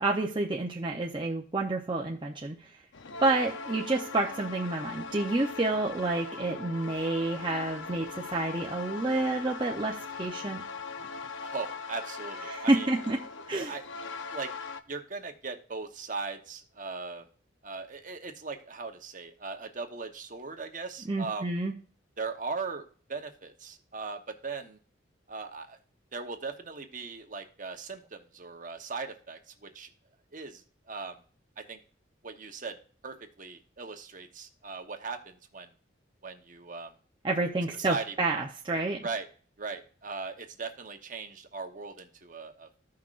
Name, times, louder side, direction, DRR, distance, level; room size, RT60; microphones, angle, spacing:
voice 1, 0.0-2.7 3.2-10.6 12.5-13.2 13.5-13.7 21.1-21.7 37.2-39.1, right 2 dB, 25° right, -1 dB, 0.7 m, -29 dB
sound 1, 2.9-14.8, left 5 dB, 80° left, 0.7 m, -40 dB
voice 2, 11.4-12.9 13.5-13.8 14.3-14.5 14.9-17.3 17.6-21.6 22.2-24.8 25.3-25.8 26.1-29.9 30.3-31.2 31.6-31.8 32.2-32.8 33.0-35.7 36.2-36.9 37.8-38.1 39.0-39.3 39.6-42.7, right 4 dB, 45° right, 5 dB, 1.0 m, -39 dB
14.5 x 5.8 x 2.5 m, 0.41 s
head